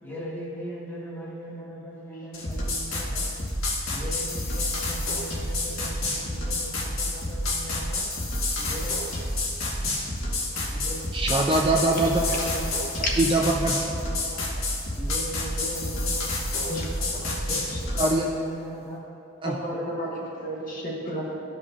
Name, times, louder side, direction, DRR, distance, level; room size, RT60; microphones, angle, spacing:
voice 1, 0.0-3.3 3.9-8.0 8.6-9.0 10.7-11.0 12.1-12.7 14.0-14.4 15.0-16.3 16.6-17.6 17.9-19.0 19.7-19.8, equal, 10° left, -7 dB, 1.4 m, -38 dB
sound 1, 2.3-18.2, left 2 dB, 85° left, 1.5 m, -29 dB
voice 2, 11.1-12.2 13.2-13.8 18.0-18.2 19.4-19.6, right 2 dB, 25° right, 0 dB, 0.4 m, -22 dB
voice 3, 19.4-21.3, equal, 40° left, -3 dB, 1.1 m, -31 dB
13.5 x 5.4 x 2.4 m, 2.7 s
head